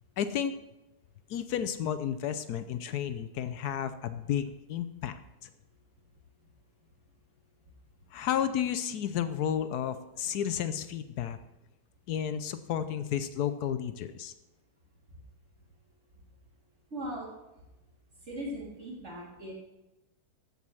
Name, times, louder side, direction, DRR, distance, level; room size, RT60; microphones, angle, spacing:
voice 1, 0.2-0.5 1.3-5.1 5.4-5.5 8.1-11.4 12.1-14.3, left 9 dB, 75° left, 12 dB, 1.2 m, -32 dB
voice 2, 16.9-17.3 18.3-19.5, equal, 45° right, -4 dB, 3.4 m, -38 dB
14.5 x 5.5 x 6.2 m, 0.97 s
omnidirectional pair, 1.7 m